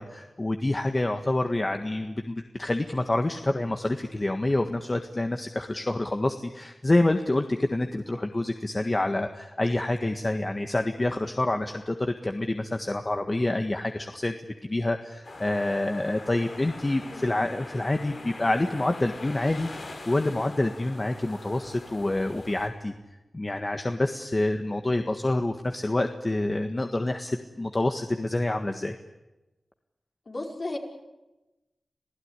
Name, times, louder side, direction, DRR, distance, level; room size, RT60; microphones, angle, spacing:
voice 1, 0.0-14.3 14.6-19.7 20.0-22.9 23.3-28.9, left 2 dB, 35° left, 5 dB, 1.6 m, -27 dB
sound 1, 15.2-22.7, left 2 dB, 75° left, 4.5 m, -43 dB
voice 2, 30.3-30.8, left 2 dB, 55° left, 0 dB, 5.2 m, -34 dB
27.0 x 16.5 x 9.9 m, 1.1 s
cardioid pair, 40°, 0 cm